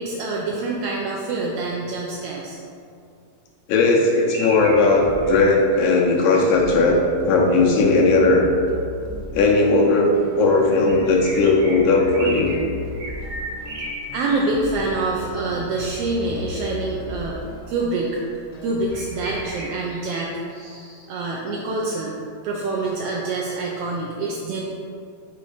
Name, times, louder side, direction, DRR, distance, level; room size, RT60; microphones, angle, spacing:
voice 1, 0.0-2.6 14.1-17.4 17.7-18.2 18.6-20.4 21.1-22.2 22.4-24.6, right 3 dB, 80° right, -2 dB, 1.4 m, -26 dB
voice 2, 3.7-7.0 7.2-8.5 9.3-12.6, left 3 dB, 90° left, -1 dB, 2.3 m, -17 dB
sound 1, 4.1-6.9 10.8-12.6 12.9-14.4 17.2-17.3 18.9-21.3 22.8-22.9, right 1 dB, 50° right, 1.3 m, -36 dB
sound 2, 4.5-19.4, left 2 dB, 70° left, 1.6 m, -37 dB
6.8 x 3.1 x 4.9 m, 2.4 s
omnidirectional pair, 3.3 m